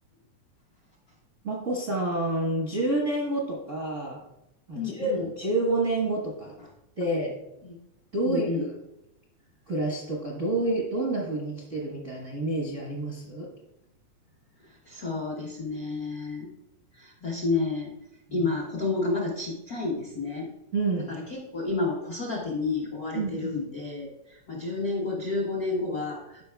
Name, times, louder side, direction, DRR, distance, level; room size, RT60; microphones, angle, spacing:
voice 1, 1.4-4.2 4.7-6.5 7.0-7.3 8.1-8.8 9.7-13.5 18.3-18.5 20.7-21.1 23.1-23.6, right 2 dB, 60° right, -4 dB, 0.7 m, -28 dB
voice 2, 4.7-5.3 7.6-7.7 8.2-8.7 14.9-16.5 17.0-17.9 18.3-20.5 21.1-26.4, left 3 dB, 80° left, -3 dB, 0.8 m, -30 dB
13.0 x 5.5 x 2.3 m, 0.88 s
omnidirectional pair, 3.4 m